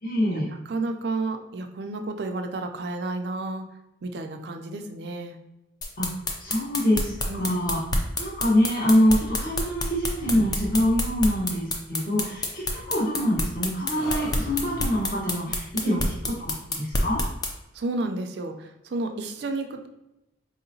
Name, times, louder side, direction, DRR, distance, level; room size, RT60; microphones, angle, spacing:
voice 1, 0.0-0.5 6.0-6.1 6.4-7.8 8.2-16.0 16.7-17.2, equal, 45° left, -6 dB, 1.0 m, -24 dB
voice 2, 0.7-3.7 4.0-5.4 7.3-7.5 15.8-16.0 17.7-19.9, right 2 dB, 55° right, 5 dB, 0.4 m, -31 dB
sound 1, 5.8-17.5, left 2 dB, 20° left, 0.3 m, -27 dB
sound 2, 9.2-9.9 10.2-11.3 12.7-13.5 13.9-15.2, equal, 85° left, 1.1 m, -39 dB
4.1 x 2.8 x 2.6 m, 0.94 s
head